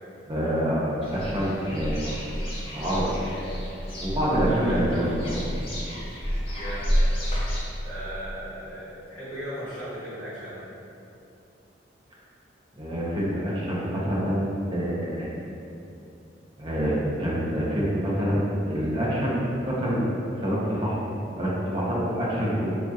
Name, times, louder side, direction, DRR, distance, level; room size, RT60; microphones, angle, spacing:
voice 1, 0.3-2.0 2.7-3.2 4.0-5.4 12.8-15.3 16.6-21.1 21.4-22.8, equal, 30° right, -7 dB, 0.6 m, -26 dB
sound 1, 1.0-7.6, equal, 30° left, 0.6 m, -29 dB
voice 2, 4.5-4.8 6.5-6.9 7.8-10.7, right 1 dB, 10° left, -13 dB, 1.2 m, -37 dB
3.3 x 2.3 x 2.7 m, 2.7 s
head